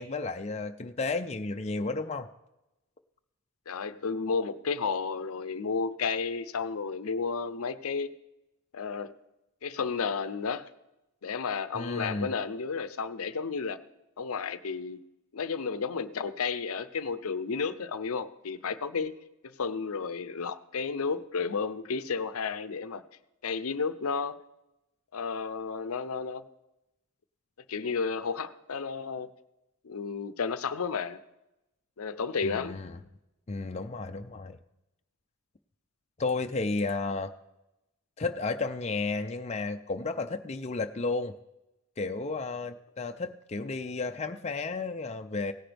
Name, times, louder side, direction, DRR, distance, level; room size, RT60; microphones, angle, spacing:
voice 1, 0.0-2.3 11.7-12.3 32.4-33.0 33.5-34.6 36.2-37.3 38.2-41.3 42.0-45.5, left 3 dB, 30° left, 5 dB, 0.5 m, -32 dB
voice 2, 3.7-8.1 8.7-9.1 9.6-10.7 11.2-13.8 14.2-15.0 15.3-19.2 19.4-23.0 23.4-24.4 25.1-26.4 27.7-29.3 29.8-31.2 32.0-32.8, left 5 dB, 75° left, 13 dB, 0.6 m, -32 dB
17.5 x 10.0 x 3.4 m, 0.92 s
head